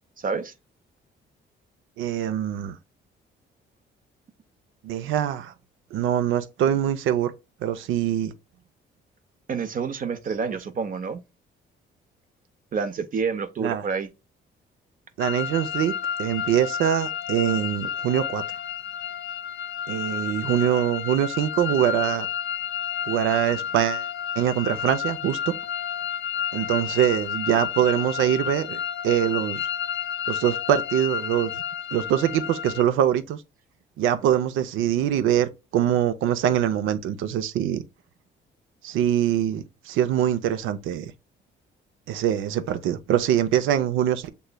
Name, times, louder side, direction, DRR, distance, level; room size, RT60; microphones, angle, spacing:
voice 1, 0.2-0.5 9.5-11.2 12.7-14.1, right 5 dB, 45° right, 0.7 m, -28 dB
voice 2, 2.0-2.8 4.8-5.5 5.9-7.3 7.6-8.3 13.6-13.8 15.2-15.9 16.2-18.4 19.9-22.3 23.1-24.1 24.4-25.4 26.5-29.7 30.3-31.5 31.9-33.4 34.0-37.8 38.8-41.1 42.1-44.3, right 10 dB, 85° right, 0.5 m, -23 dB
sound 1, 15.2-32.8, left 9 dB, 60° left, 0.5 m, -31 dB
6.7 x 3.1 x 2.2 m
cardioid pair, 90°, 20 cm